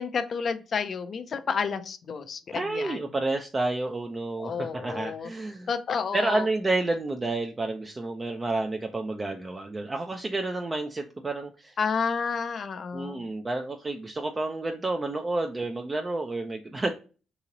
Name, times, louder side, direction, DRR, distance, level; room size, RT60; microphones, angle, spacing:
voice 1, 0.0-3.0 4.4-5.3 5.7-6.5 11.8-13.2, left 5 dB, 50° left, 10 dB, 0.5 m, -30 dB
voice 2, 2.5-5.7 6.1-11.8 12.9-16.9, right 2 dB, 25° right, 4 dB, 0.4 m, -30 dB
3.0 x 2.8 x 3.8 m, 0.34 s
cardioid pair, 90°, 0 cm